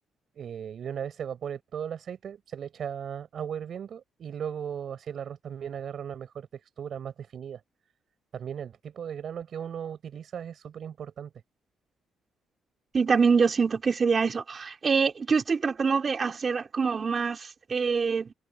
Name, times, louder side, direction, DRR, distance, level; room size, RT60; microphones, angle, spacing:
voice 1, 0.3-7.6 8.3-11.3, right 8 dB, 60° right, 5.7 m, -37 dB
voice 2, 12.9-18.3, right 5 dB, 40° right, 4.0 m, -25 dB
cardioid pair, 90°, 0 cm